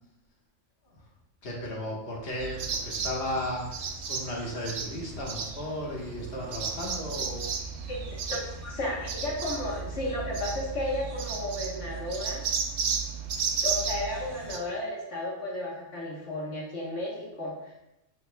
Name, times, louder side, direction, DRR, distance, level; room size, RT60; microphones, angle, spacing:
voice 1, 1.4-7.5 8.0-8.1, left 1 dB, 50° left, -3 dB, 1.5 m, -35 dB
sound 1, 2.4-14.6, right 5 dB, 80° right, 1.1 m, -34 dB
voice 2, 8.3-12.4 13.6-17.7, left 1 dB, 70° left, -4 dB, 1.5 m, -33 dB
7.2 x 6.6 x 2.2 m, 0.89 s
omnidirectional pair, 1.3 m